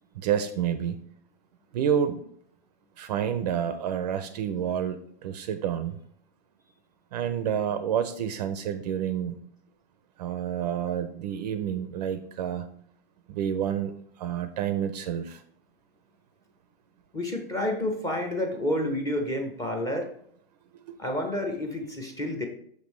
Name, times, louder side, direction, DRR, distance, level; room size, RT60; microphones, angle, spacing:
voice 1, 0.2-1.0 1.7-2.2 3.0-6.0 7.1-9.4 10.2-12.7 13.3-13.9 14.2-15.4 20.9-21.0, right 9 dB, 40° right, 10 dB, 0.4 m, -29 dB
voice 2, 17.1-20.1 21.0-22.4, left 1 dB, 10° left, 3 dB, 0.5 m, -29 dB
6.2 x 5.2 x 3.1 m, 0.65 s
hypercardioid pair, 140°, 33 cm